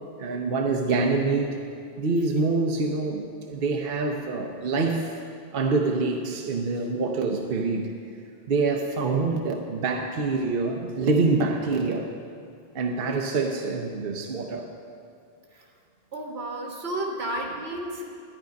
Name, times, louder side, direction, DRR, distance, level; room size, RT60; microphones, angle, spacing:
voice 1, 0.2-1.6 2.0-5.2 5.5-7.9 8.5-12.1 12.7-14.7, right 3 dB, 65° right, 2 dB, 1.0 m, -26 dB
voice 2, 16.1-18.1, right 1 dB, 85° right, 0 dB, 1.7 m, -32 dB
12.0 x 9.9 x 5.2 m, 2.5 s
omnidirectional pair, 1.0 m